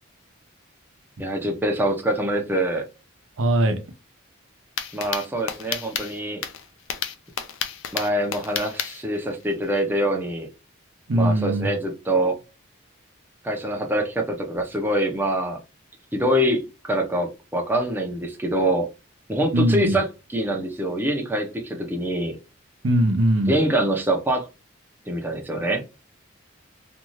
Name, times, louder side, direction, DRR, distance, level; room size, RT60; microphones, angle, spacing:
voice 1, 1.2-2.9 4.9-6.4 7.9-10.5 11.1-12.4 13.4-15.6 16.1-18.9 19.3-20.1 20.3-22.4 23.5-24.5 25.1-25.8, right 1 dB, 10° right, 0.5 m, -24 dB
voice 2, 3.4-3.8 11.1-11.7 19.5-20.0 22.8-23.5, right 1 dB, 80° right, 0.7 m, -20 dB
sound 1, 4.8-9.8, left 8 dB, 70° left, 0.5 m, -31 dB
2.6 x 2.3 x 3.0 m
head